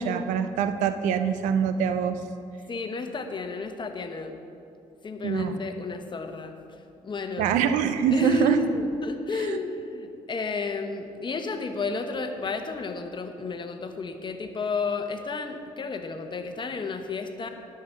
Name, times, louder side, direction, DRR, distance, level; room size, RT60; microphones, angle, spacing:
voice 1, 0.0-2.2 5.2-5.5 7.4-8.6 9.5-9.6, right 8 dB, 85° right, 10 dB, 0.6 m, -24 dB
voice 2, 2.7-4.4 5.0-6.8 7.0-7.5 8.1-17.5, left 4 dB, 40° left, 6 dB, 1.1 m, -32 dB
10.5 x 6.0 x 7.1 m, 2.5 s
supercardioid pair, 70°, 13 cm